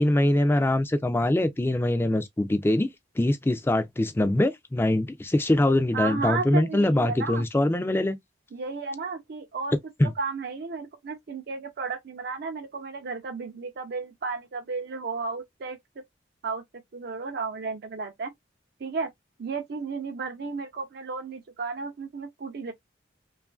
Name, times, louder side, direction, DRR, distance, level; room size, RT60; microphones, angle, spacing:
voice 1, 0.0-2.9 3.2-8.2 10.0-10.1, left 1 dB, 10° left, 0.3 m, -23 dB
voice 2, 5.9-7.4 8.5-9.8 10.2-16.0 16.4-16.6 16.9-18.3 18.8-19.1 19.4-22.7, right 4 dB, 55° right, 0.4 m, -33 dB
3.0 x 2.4 x 2.3 m
head